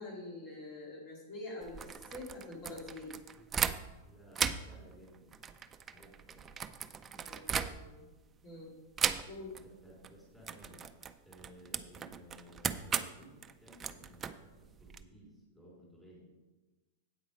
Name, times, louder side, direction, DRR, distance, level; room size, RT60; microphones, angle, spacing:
voice 1, 0.0-3.2 7.0-8.0 8.4-8.7 9.2-9.6, left 2 dB, 40° left, -4 dB, 2.7 m, -46 dB
sound 1, 1.6-4.0 4.3-8.1 9.0-9.6 9.9-10.1 10.4-15.0, right 7 dB, 15° right, 0.4 m, -37 dB
voice 2, 4.0-5.5 5.9-6.5 9.5-10.9 11.2-16.3, equal, 5° left, -5 dB, 3.8 m, -57 dB
8.7 x 8.0 x 5.0 m, 1.2 s
supercardioid pair, 155°, 0 cm